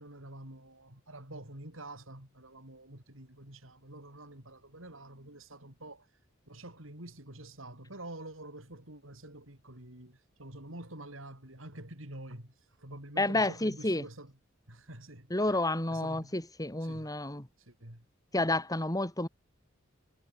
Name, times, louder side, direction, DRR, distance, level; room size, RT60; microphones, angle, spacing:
voice 1, 0.0-6.1 6.5-14.3 14.7-15.6 15.9-16.4 16.8-17.1 17.6-18.1, right 1 dB, 75° right, 6.8 m, -47 dB
voice 2, 13.2-14.0 15.3-17.5 18.3-19.3, left 2 dB, 20° left, 3.1 m, -30 dB
head